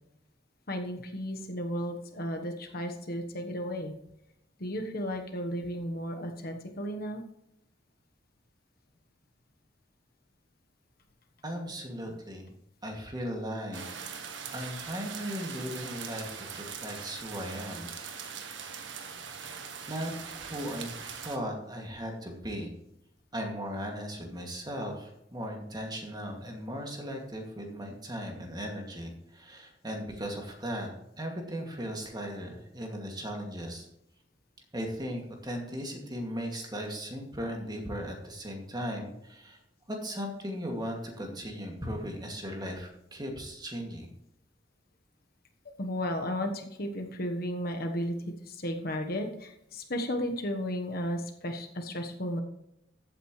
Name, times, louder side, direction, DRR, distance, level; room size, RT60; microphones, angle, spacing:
voice 1, 0.7-3.9 4.6-7.2 12.0-12.1 13.9-14.0 45.8-52.4, equal, 55° left, 4 dB, 1.3 m, -34 dB
voice 2, 11.4-12.5 12.8-13.8 14.5-17.9 19.9-22.7 23.3-30.9 31.2-33.9 34.7-39.6 39.9-44.1, equal, 25° right, 1 dB, 2.4 m, -37 dB
sound 1, 13.7-21.4, right 6 dB, 90° right, 1.5 m, -41 dB
14.5 x 9.0 x 3.2 m, 0.82 s
head